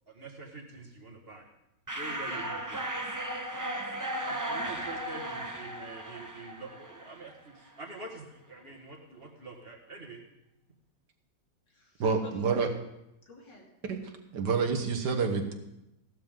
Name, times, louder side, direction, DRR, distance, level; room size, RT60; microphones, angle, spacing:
voice 1, 0.1-1.5 1.9-2.8 4.2-10.2, right 2 dB, 35° right, 0 dB, 1.8 m, -45 dB
sound 1, 1.9-7.4, right 1 dB, 15° right, 0.6 m, -36 dB
voice 2, 2.1-2.5 3.6-4.1 4.7-4.9 11.7-12.6 13.3-13.7, left 1 dB, 75° left, -2 dB, 3.6 m, -54 dB
voice 3, 12.0-12.7 13.9-14.0 14.3-15.5, right 5 dB, 65° right, 5 dB, 1.8 m, -28 dB
15.5 x 12.5 x 3.8 m, 0.88 s
omnidirectional pair, 2.0 m